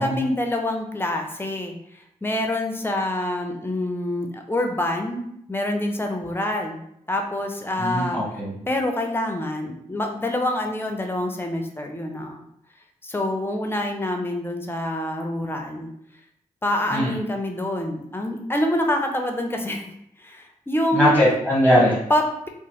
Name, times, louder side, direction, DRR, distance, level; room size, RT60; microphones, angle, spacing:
voice 1, 0.0-6.8 7.1-8.2 8.7-12.4 13.0-15.9 16.6-19.9 20.2-21.2 22.1-22.5, left 1 dB, 15° left, 3 dB, 0.5 m, -26 dB
voice 2, 7.8-8.6 16.9-17.1 20.9-22.0, equal, 10° right, -7 dB, 1.2 m, -20 dB
2.9 x 2.0 x 2.9 m, 0.74 s
cardioid pair, 50°, 14 cm